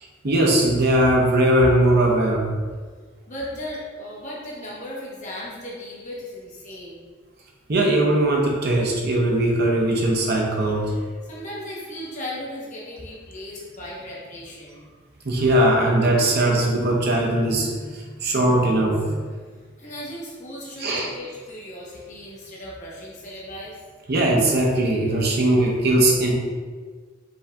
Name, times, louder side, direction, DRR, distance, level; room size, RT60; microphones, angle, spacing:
voice 1, 0.2-2.5 7.7-10.9 15.2-19.3 20.8-21.1 24.1-26.3, right 1 dB, 50° right, -1 dB, 0.8 m, -20 dB
voice 2, 3.3-7.0 11.2-14.9 19.8-23.8, left 1 dB, 35° left, -6 dB, 1.0 m, -36 dB
5.2 x 2.6 x 3.4 m, 1.5 s
head